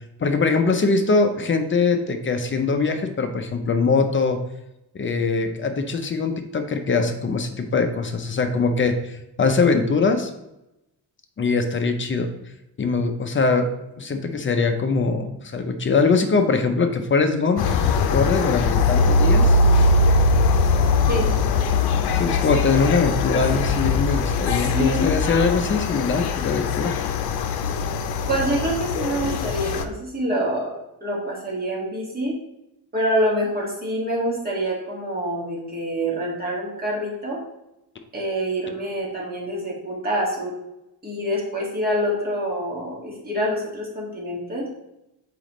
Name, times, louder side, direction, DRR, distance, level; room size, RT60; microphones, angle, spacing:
voice 1, 0.2-4.4 4.9-10.3 11.4-12.3 12.8-13.7 14.0-17.7 18.1-19.6 22.1-26.9, left 4 dB, 30° left, 7 dB, 0.6 m, -22 dB
sound 1, 17.6-29.8, left 3 dB, 75° left, 0.7 m, -21 dB
voice 2, 24.6-25.1 28.3-30.7 31.0-32.3 32.9-37.4 38.1-40.5 41.0-44.7, equal, 25° right, -4 dB, 2.0 m, -26 dB
6.9 x 4.9 x 3.1 m, 0.90 s
cardioid pair, 130°, 38 cm